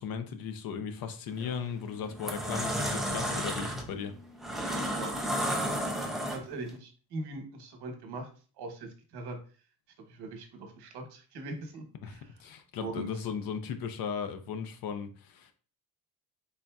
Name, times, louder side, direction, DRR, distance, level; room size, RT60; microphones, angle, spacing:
voice 1, 0.0-4.1 12.0-15.5, left 6 dB, 65° left, 0.6 m, -37 dB
sound 1, 1.3-1.5 2.0-6.7, equal, ahead, 0.5 m, -32 dB
voice 2, 4.8-5.7 6.3-8.3 8.6-9.4 10.1-11.8 12.1-12.3 12.8-13.1, right 2 dB, 85° right, 1.0 m, -41 dB
4.0 x 3.5 x 2.2 m
cardioid pair, 145°, 38 cm